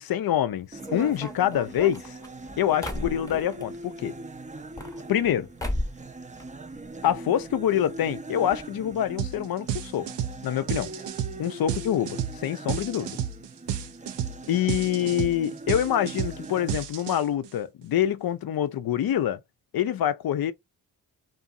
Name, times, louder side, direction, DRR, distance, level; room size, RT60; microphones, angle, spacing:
voice 1, 0.0-2.1 2.6-4.1 5.1-5.5 7.0-10.1 10.4-10.9 11.4-13.2 14.5-19.4 19.7-20.5, left 10 dB, 60° left, 0.5 m, -26 dB
sound 1, 0.7-16.7, right 2 dB, 20° right, 0.5 m, -41 dB
sound 2, 0.8-3.7 4.5-5.3 5.6-6.1 6.4-7.2 7.4-7.5 7.7-7.8 8.5-8.6 8.9-9.1, left 1 dB, 10° left, 0.8 m, -35 dB
sound 3, 9.2-9.4 9.7-17.5, right 9 dB, 80° right, 0.5 m, -31 dB
2.6 x 2.4 x 2.5 m
cardioid pair, 45°, 41 cm